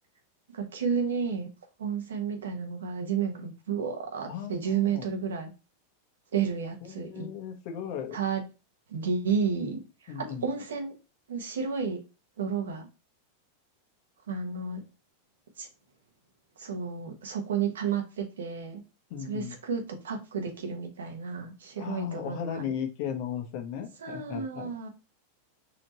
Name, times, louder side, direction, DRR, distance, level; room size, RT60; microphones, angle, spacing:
voice 1, 0.5-1.5 1.8-5.5 6.3-7.3 8.1-8.4 8.9-10.9 11.3-12.0 12.4-12.9 14.3-14.8 15.6-15.7 16.6-18.8 19.2-22.7 24.0-24.9, right 6 dB, 90° right, 1.1 m, -31 dB
voice 2, 4.3-5.0 6.8-8.2 10.1-10.4 19.1-19.5 21.8-24.7, left 8 dB, 55° left, 1.0 m, -36 dB
4.1 x 3.0 x 3.0 m
hypercardioid pair, 120°, 0 cm